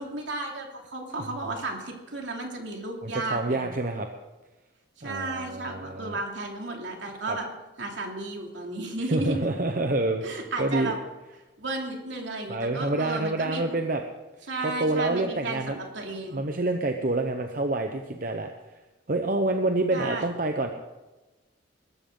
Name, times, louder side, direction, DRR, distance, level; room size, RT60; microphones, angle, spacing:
voice 1, 0.0-3.6 5.0-7.5 7.8-9.5 10.2-11.0 11.6-13.6 14.5-16.4 19.9-20.3, right 2 dB, 70° right, 1 dB, 2.8 m, -33 dB
voice 2, 3.0-4.1 5.0-6.2 7.3-7.4 9.1-10.9 12.5-14.0 14.6-15.8 16.3-18.5 19.1-20.7, right 2 dB, 45° right, 5 dB, 0.8 m, -27 dB
21.0 x 12.5 x 3.9 m, 1.1 s
head